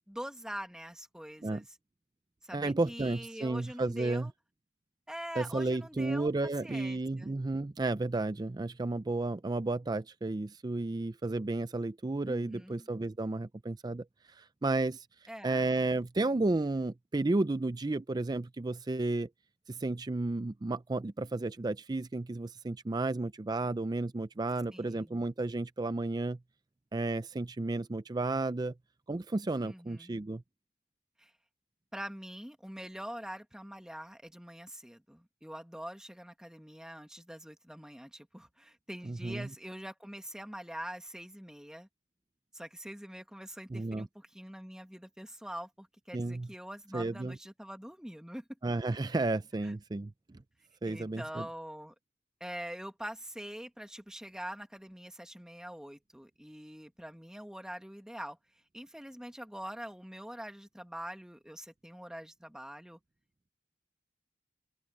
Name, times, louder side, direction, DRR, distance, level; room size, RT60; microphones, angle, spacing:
voice 1, 0.1-1.6 2.4-4.3 5.1-6.3 6.6-7.3 12.3-12.9 15.3-15.7 24.7-25.1 29.6-30.2 31.2-31.3 31.9-41.9 42.5-48.4 49.6-49.7 50.9-51.9 52.4-58.4 58.7-63.0, equal, 5° right, 1.8 m, -44 dB
voice 2, 2.5-4.3 5.3-19.3 19.7-26.4 26.9-28.7 29.1-30.4 39.0-39.5 43.7-44.1 46.1-46.5 46.9-47.4 48.6-50.1 50.8-51.5, right 2 dB, 20° right, 0.4 m, -32 dB
open air
head